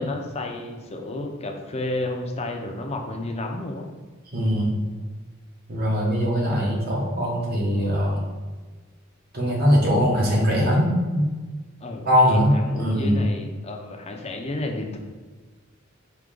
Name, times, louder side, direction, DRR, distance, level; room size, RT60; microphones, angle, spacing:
voice 1, 0.0-3.9 11.8-15.0, left 2 dB, 30° left, 3 dB, 0.6 m, -31 dB
voice 2, 4.3-4.7 5.7-8.2 9.3-11.3 12.0-13.2, equal, 50° right, -3 dB, 1.3 m, -21 dB
4.7 x 2.9 x 3.8 m, 1.4 s
head